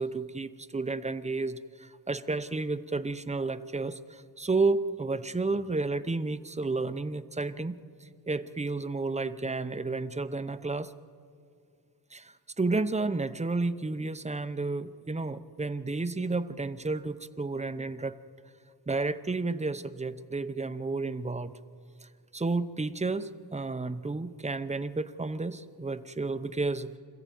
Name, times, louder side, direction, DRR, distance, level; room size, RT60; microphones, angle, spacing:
voice 1, 0.0-10.9 12.1-18.2 18.9-21.5 22.0-27.0, right 3 dB, 15° right, 10 dB, 0.7 m, -31 dB
26.5 x 14.5 x 9.2 m, 2.3 s
wide cardioid pair, 130°, 39 cm